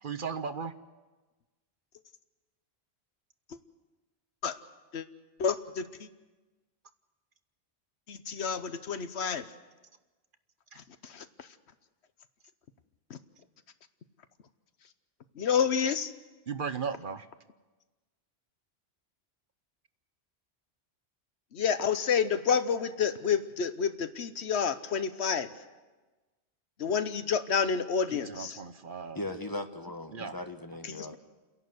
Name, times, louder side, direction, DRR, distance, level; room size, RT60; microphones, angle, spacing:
voice 1, 0.0-0.7 10.7-10.8 16.5-17.3 28.1-29.2 30.1-30.3, right 6 dB, 55° right, 11 dB, 1.0 m, -36 dB
voice 2, 5.4-5.8 8.1-9.4 11.1-11.2 15.4-16.1 21.5-25.5 26.8-28.6 30.9-31.2, left 6 dB, 75° left, 11 dB, 1.2 m, -29 dB
voice 3, 29.1-31.2, left 1 dB, 20° left, 6 dB, 1.3 m, -38 dB
29.5 x 11.0 x 7.9 m, 1.2 s
omnidirectional pair, 1.1 m